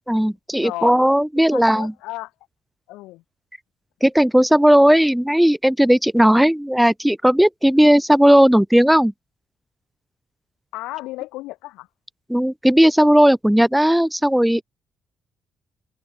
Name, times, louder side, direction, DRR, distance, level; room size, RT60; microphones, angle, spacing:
voice 1, 0.1-1.9 4.0-9.1 12.3-14.6, equal, 5° right, 1.7 m, -16 dB
voice 2, 0.6-1.0 1.4-2.3 2.9-3.2 10.7-11.9, left 19 dB, 90° left, 3.8 m, -33 dB
supercardioid pair, 55°, 0 cm